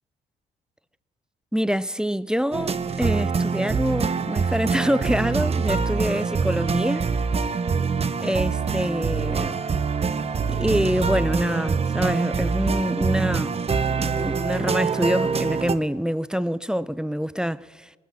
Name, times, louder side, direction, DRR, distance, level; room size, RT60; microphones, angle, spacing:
voice 1, 1.5-7.1 8.2-9.6 10.5-13.6 13.9-17.9, equal, 5° right, 0.4 m, -26 dB
sound 1, 2.5-15.8, right 5 dB, 30° right, 0.7 m, -25 dB
19.5 x 9.4 x 7.1 m
cardioid pair, 90°, 20 cm